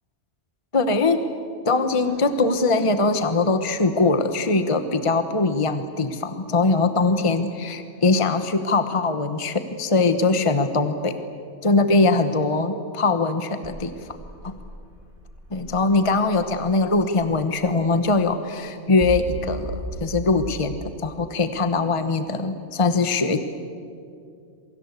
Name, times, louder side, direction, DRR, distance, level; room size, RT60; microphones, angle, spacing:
voice 1, 0.7-1.2 1.6-11.1 11.6-13.9 14.4-14.5 15.5-23.4, left 3 dB, 25° left, 9 dB, 1.2 m, -22 dB
sound 1, 1.9-4.5 7.0-7.1 13.6-20.6, right 1 dB, 45° right, 5.0 m, -38 dB
27.5 x 24.0 x 8.2 m, 2.4 s
omnidirectional pair, 1.3 m